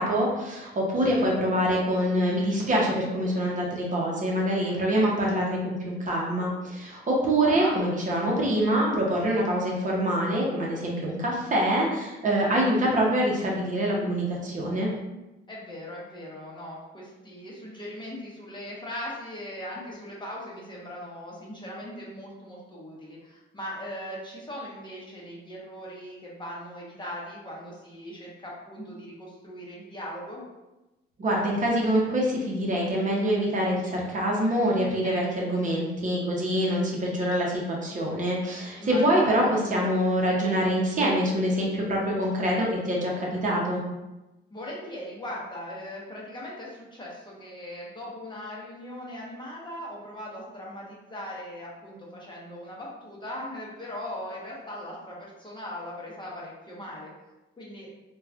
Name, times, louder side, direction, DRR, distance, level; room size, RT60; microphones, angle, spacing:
voice 1, 0.0-14.9 31.2-43.8, equal, 40° right, -3 dB, 0.7 m, -25 dB
voice 2, 7.4-7.8 15.5-30.5 35.0-35.3 38.7-39.5 44.5-57.1 57.6-57.9, left 1 dB, 25° left, -4 dB, 0.8 m, -39 dB
3.0 x 2.2 x 2.4 m, 1.0 s
cardioid pair, 90°, 20 cm